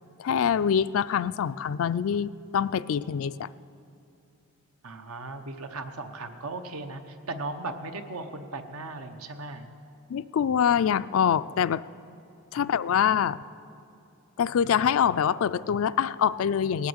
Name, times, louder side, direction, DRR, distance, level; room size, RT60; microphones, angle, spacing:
voice 1, 0.2-3.5 10.1-11.8 12.5-13.4 14.4-16.9, left 8 dB, 70° left, 16 dB, 0.3 m, -25 dB
voice 2, 4.8-9.7 12.5-12.7 13.2-13.4, right 2 dB, 80° right, 7 dB, 1.0 m, -37 dB
18.5 x 8.4 x 8.0 m, 2.8 s
head